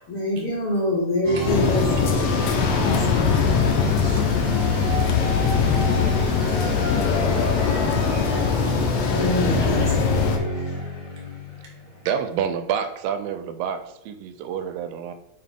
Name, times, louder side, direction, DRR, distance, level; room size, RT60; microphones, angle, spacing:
voice 1, 0.1-1.8 2.8-3.5 9.0-10.2, left 1 dB, 70° left, -4 dB, 1.4 m, -25 dB
sound 1, 1.2-11.9, left 1 dB, 50° left, 0.9 m, -29 dB
sound 2, 1.5-10.4, left 6 dB, 90° left, 1.4 m, -22 dB
voice 2, 3.9-5.2 11.1-12.1, right 3 dB, 35° right, -3 dB, 0.6 m, -45 dB
voice 3, 12.1-15.1, right 8 dB, 85° right, 9 dB, 2.3 m, -28 dB
5.9 x 4.7 x 3.7 m, 0.83 s
omnidirectional pair, 4.0 m